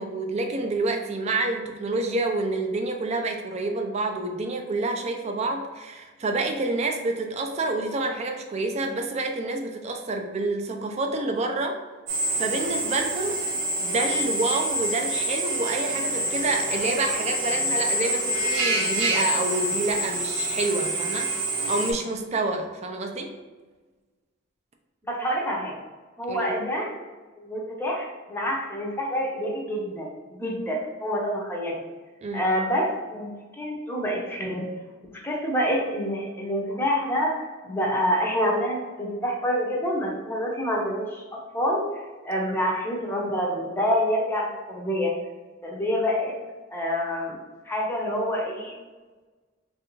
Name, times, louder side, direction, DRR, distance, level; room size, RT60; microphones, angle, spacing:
voice 1, 0.0-11.8 12.4-13.4 13.8-21.3 21.7-23.4 26.3-26.5 32.2-32.4, right 2 dB, 35° right, 4 dB, 0.4 m, -28 dB
Drill, 12.1-21.9, right 1 dB, 65° right, 0.7 m, -27 dB
voice 2, 25.1-25.7 26.2-27.0 27.4-31.8 32.3-34.7 35.1-41.9 42.2-45.1 45.6-46.3 46.7-47.4 47.7-48.7, equal, 10° left, -2 dB, 0.6 m, -27 dB
3.3 x 2.5 x 3.0 m, 1.3 s
head